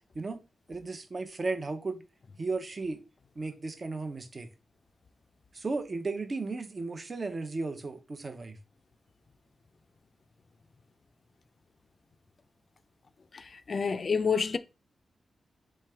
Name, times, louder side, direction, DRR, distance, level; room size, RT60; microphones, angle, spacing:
voice 1, 0.7-2.0 2.4-3.0 3.4-4.5 5.5-8.6, right 3 dB, 45° right, 0.7 m, -35 dB
voice 2, 13.7-14.6, left 5 dB, 55° left, 0.3 m, -27 dB
3.3 x 3.2 x 3.4 m
cardioid pair, 60°, 0 cm